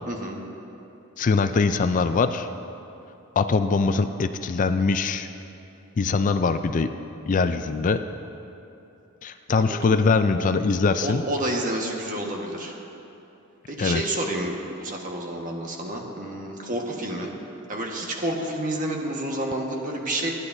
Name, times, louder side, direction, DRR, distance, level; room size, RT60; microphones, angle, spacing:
voice 1, 0.1-0.4 9.7-9.8 11.0-12.8 13.7-17.3 17.7-20.3, right 1 dB, 40° right, 0 dB, 1.4 m, -29 dB
voice 2, 1.2-2.5 3.4-5.3 6.0-6.9 7.3-8.0 9.2-11.2 13.8-14.0, left 4 dB, 40° left, 9 dB, 0.4 m, -22 dB
27.0 x 9.9 x 2.7 m, 2.9 s
head